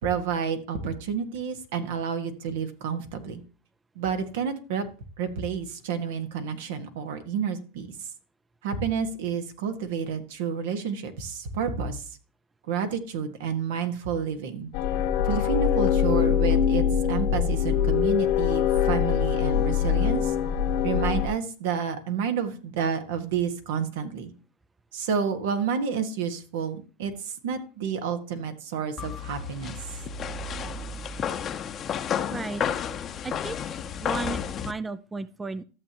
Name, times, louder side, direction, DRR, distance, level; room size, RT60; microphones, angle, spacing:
voice 1, 0.0-3.4 3.9-4.9 5.2-7.9 8.6-12.0 12.7-14.7 15.2-20.3 20.8-24.3 24.9-29.7, right 6 dB, 75° right, 7 dB, 1.7 m, -30 dB
sound 1, 14.7-21.3, left 9 dB, 60° left, 1.1 m, -23 dB
sound 2, 29.0-34.7, left 7 dB, 35° left, 0.8 m, -31 dB
voice 2, 32.3-32.6 33.2-35.6, right 3 dB, 15° right, 15 dB, 0.5 m, -35 dB
13.5 x 7.1 x 3.0 m, 0.36 s
supercardioid pair, 115°, 0 cm